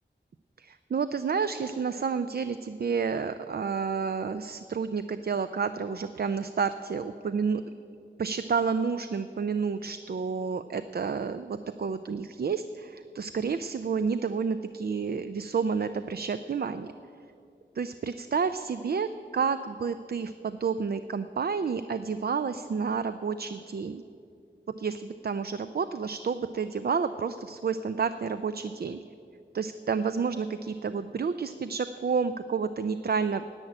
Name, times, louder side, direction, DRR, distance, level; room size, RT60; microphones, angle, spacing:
voice 1, 0.6-7.6 8.2-16.9 17.8-24.0 24.8-29.0 29.5-33.4, right 5 dB, 55° right, 11 dB, 0.4 m, -30 dB
10.5 x 8.7 x 8.8 m, 2.6 s
wide cardioid pair, 60°, 19 cm